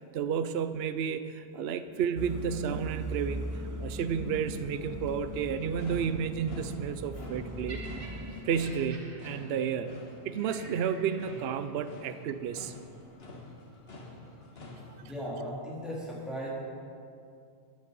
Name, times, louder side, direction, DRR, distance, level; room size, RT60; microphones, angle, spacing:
voice 1, 0.1-3.4 3.8-7.8 8.5-9.9 10.2-12.7, right 7 dB, 70° right, 11 dB, 0.8 m, -31 dB
sound 1, 2.2-8.4, right 1 dB, 20° right, 0.7 m, -39 dB
sound 2, 5.3-15.0, left 1 dB, 60° left, 1.7 m, -48 dB
Laughter, 7.7-11.9 12.7-12.9, right 3 dB, 55° right, 1.5 m, -50 dB
voice 2, 15.0-16.5, equal, ahead, -7 dB, 3.5 m, -37 dB
14.5 x 10.5 x 5.3 m, 2.4 s
omnidirectional pair, 1.1 m